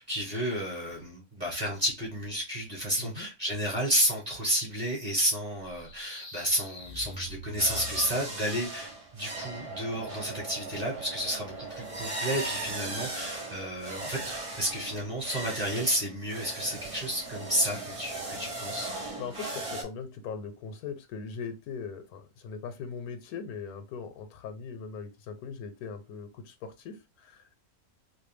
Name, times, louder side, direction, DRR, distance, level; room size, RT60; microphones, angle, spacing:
voice 1, 0.0-14.2 14.6-18.9, equal, 30° right, -3 dB, 1.0 m, -31 dB
sound 1, 5.6-8.5, left 2 dB, 40° left, 0.4 m, -44 dB
sound 2, 7.6-19.8, right 2 dB, 60° right, 0.3 m, -38 dB
voice 2, 19.2-27.6, left 5 dB, 80° left, 9 dB, 1.0 m, -40 dB
2.5 x 2.2 x 3.1 m, 0.28 s
omnidirectional pair, 1.6 m